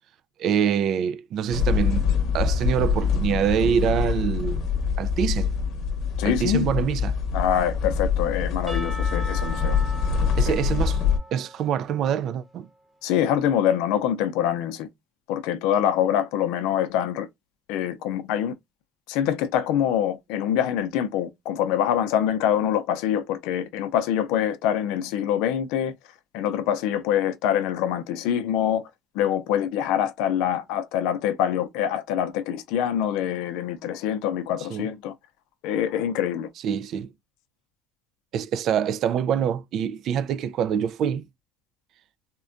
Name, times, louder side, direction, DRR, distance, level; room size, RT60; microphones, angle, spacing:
voice 1, 0.4-2.1 2.3-4.6 5.0-5.5 6.2-7.2 10.4-11.0 11.3-12.7 34.7-34.9 36.6-37.1 38.3-41.2, right 8 dB, 60° right, 0.3 m, -25 dB
sound 1, 1.5-11.2, left 6 dB, 60° left, 0.8 m, -25 dB
voice 2, 6.2-6.7 7.3-9.8 10.5-10.6 13.0-14.9 15.3-17.3 17.7-18.5 19.1-25.9 26.3-28.8 29.1-35.1 35.6-36.5, left 10 dB, 85° left, 0.5 m, -25 dB
Percussion / Church bell, 8.7-12.5, equal, 15° right, 0.8 m, -39 dB
3.6 x 2.2 x 2.5 m
cardioid pair, 115°, 0 cm